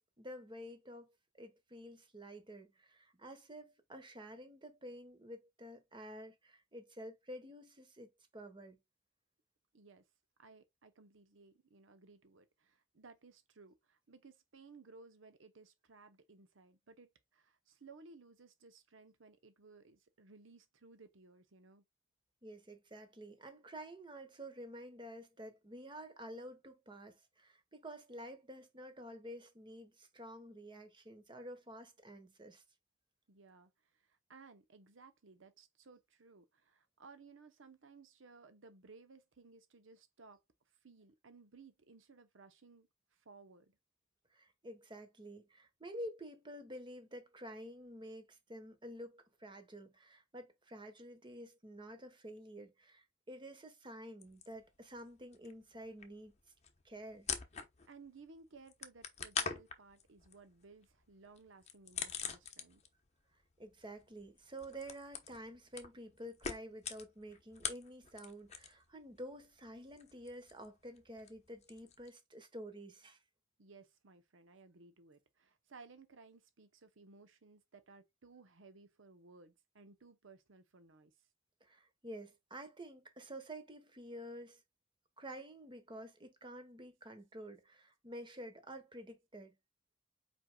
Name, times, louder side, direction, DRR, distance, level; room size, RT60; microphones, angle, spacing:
voice 1, 0.0-8.8 22.4-32.6 44.3-56.3 56.8-57.3 63.6-73.2 81.6-84.6 85.2-89.5, equal, 25° right, 1.1 m, -50 dB
voice 2, 9.7-10.0 10.4-21.8 33.3-40.4 40.8-43.7 57.9-62.8 73.6-81.1, right 4 dB, 80° right, 0.8 m, -59 dB
sound 1, 54.2-55.1 55.3-58.1 58.4-63.1 63.3-68.9 69.1-72.1, left 6 dB, 35° left, 0.8 m, -44 dB
5.0 x 4.6 x 2.2 m
head